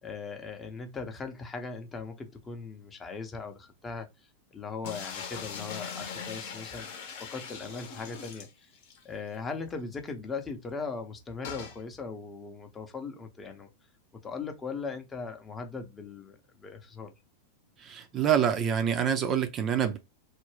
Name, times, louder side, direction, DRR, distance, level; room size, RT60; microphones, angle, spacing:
voice 1, 0.0-6.9 7.3-8.7 9.0-13.7 14.2-17.1, left 4 dB, 20° left, 0.7 m, -39 dB
sound 1, 4.8-9.0 9.4-9.5 9.7-9.8 11.4-11.8, left 6 dB, 50° left, 0.8 m, -40 dB
voice 2, 17.8-20.0, right 8 dB, 30° right, 0.5 m, -26 dB
2.6 x 2.1 x 3.2 m
figure-of-eight pair, 90°, 0 cm